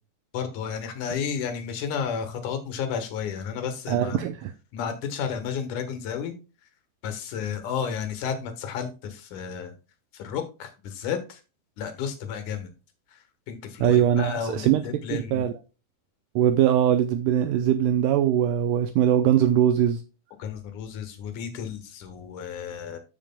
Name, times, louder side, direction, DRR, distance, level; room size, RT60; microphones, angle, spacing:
voice 1, 0.3-4.2 4.7-6.3 7.0-9.7 10.1-11.4 11.8-12.7 13.1-15.4 20.4-23.0, left 7 dB, 65° left, 7 dB, 2.6 m, -32 dB
voice 2, 3.9-4.5 13.8-14.8 15.1-15.6 16.4-20.0, right 10 dB, 80° right, 8 dB, 2.0 m, -21 dB
14.0 x 5.0 x 2.2 m, 0.31 s
omnidirectional pair, 4.1 m